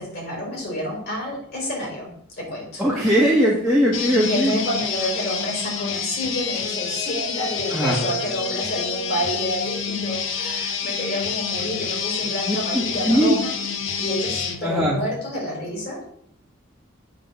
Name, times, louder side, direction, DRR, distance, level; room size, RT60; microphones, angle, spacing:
voice 1, 0.0-2.8 4.3-13.5 14.0-16.0, equal, 50° left, -2 dB, 3.8 m, -29 dB
voice 2, 2.8-4.6 7.7-8.0 12.5-13.4 14.6-15.0, equal, ahead, -6 dB, 1.2 m, -20 dB
sound 1, 3.9-14.6, left 6 dB, 65° left, 0.9 m, -28 dB
8.4 x 3.7 x 6.7 m, 0.70 s
head